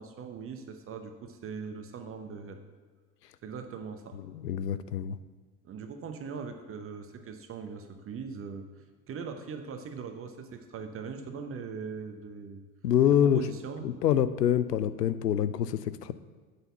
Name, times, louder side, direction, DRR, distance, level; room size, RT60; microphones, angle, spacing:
voice 1, 0.0-2.6 3.4-4.2 4.8-4.9 5.6-12.6 13.2-13.8, right 5 dB, 30° right, 6 dB, 0.8 m, -40 dB
voice 2, 4.3-5.2 12.8-13.4 13.8-16.1, left 10 dB, 80° left, 15 dB, 0.6 m, -26 dB
8.9 x 4.2 x 6.9 m, 1.4 s
figure-of-eight pair, 70°, 48 cm